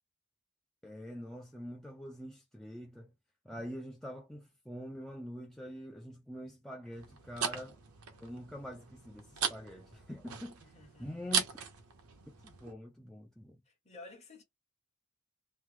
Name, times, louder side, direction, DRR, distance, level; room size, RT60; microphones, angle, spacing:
voice 1, 0.8-3.1 3.4-7.8 8.2-10.6 11.0-11.5 12.4-13.6, equal, ahead, 0.4 m, -45 dB
sound 1, 6.9-12.7, right 7 dB, 85° right, 0.8 m, -39 dB
voice 2, 10.6-11.4 13.7-14.4, left 2 dB, 30° left, 1.1 m, -53 dB
3.1 x 2.0 x 3.3 m
head